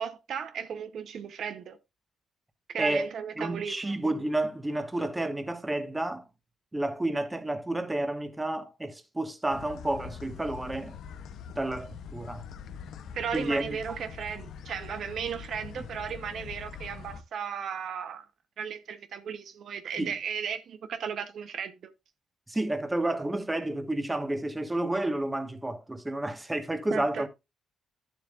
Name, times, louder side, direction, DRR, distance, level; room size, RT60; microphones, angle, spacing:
voice 1, 0.0-1.8 2.7-3.9 13.1-18.2 18.6-21.8 26.9-27.3, right 7 dB, 65° right, 0.8 m, -35 dB
voice 2, 2.8-3.1 3.4-6.2 6.7-11.0 11.5-12.4 13.3-14.0 15.8-15.9 20.0-20.1 22.5-27.3, right 1 dB, 15° right, 1.4 m, -30 dB
sound 1, 9.5-17.2, left 7 dB, 70° left, 0.7 m, -44 dB
11.5 x 7.4 x 2.4 m
cardioid pair, 90°, 0 cm